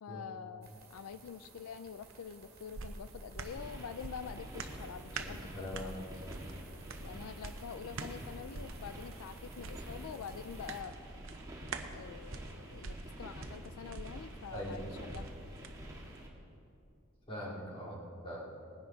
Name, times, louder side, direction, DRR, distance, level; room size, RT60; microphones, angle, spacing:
voice 1, 0.0-5.7 7.0-11.0 11.9-15.3, left 7 dB, 80° left, 12 dB, 0.4 m, -46 dB
sound 1, 0.6-10.8, right 3 dB, 50° right, 2.1 m, -58 dB
sound 2, 2.1-15.7 16.1-16.2, right 3 dB, 65° right, 0.8 m, -47 dB
sound 3, 3.5-16.3, right 1 dB, 15° right, 1.6 m, -48 dB
voice 2, 5.2-6.1 14.5-14.9 17.3-18.5, equal, 25° left, -4 dB, 2.5 m, -42 dB
19.0 x 10.5 x 4.0 m, 2.5 s
head